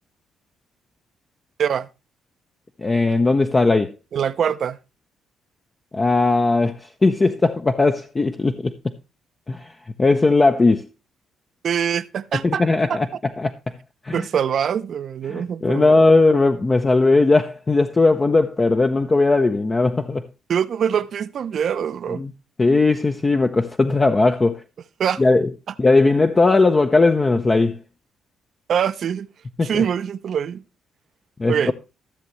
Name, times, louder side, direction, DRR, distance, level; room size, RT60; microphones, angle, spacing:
voice 1, 2.8-3.9 5.9-8.9 9.5-9.7 10.0-10.8 12.3-13.8 14.0-14.3 15.3-20.3 22.1-22.3 22.6-24.6 25.2-25.5 25.8-27.8 29.6-29.8 31.4-31.7, left 3 dB, 25° left, 0.6 m, -18 dB
voice 2, 4.1-4.8 11.6-12.6 12.9-13.0 14.1-16.1 20.5-22.2 25.0-25.2 28.7-29.3 29.6-30.6 31.5-31.7, right 8 dB, 60° right, 0.5 m, -23 dB
13.5 x 6.9 x 3.1 m
cardioid pair, 90°, 0 cm